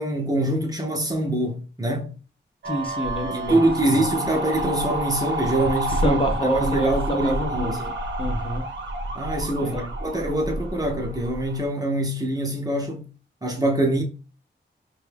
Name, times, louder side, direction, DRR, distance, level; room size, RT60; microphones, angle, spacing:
voice 1, 0.0-2.1 3.2-7.9 9.1-13.1 13.4-14.0, right 1 dB, 20° right, 0.7 m, -24 dB
voice 2, 2.6-3.6 5.9-7.8 8.2-8.6 9.6-9.9, equal, 30° left, 0.6 m, -27 dB
ambulance siren drone horn, 2.6-11.7, right 1 dB, 70° right, 0.8 m, -29 dB
4.8 x 2.3 x 3.3 m
wide cardioid pair, 105°, 19 cm